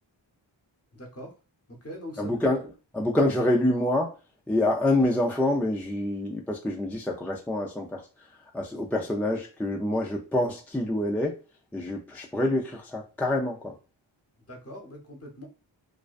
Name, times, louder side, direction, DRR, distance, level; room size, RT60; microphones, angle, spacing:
voice 1, 0.9-1.3 1.7-2.3 14.4-15.5, equal, 30° left, 0.9 m, -42 dB
voice 2, 2.2-2.6 2.9-4.1 4.5-8.0 8.5-11.4 11.7-13.7, left 1 dB, 5° left, 0.3 m, -26 dB
2.5 x 2.1 x 2.4 m
cardioid pair, 55°, 47 cm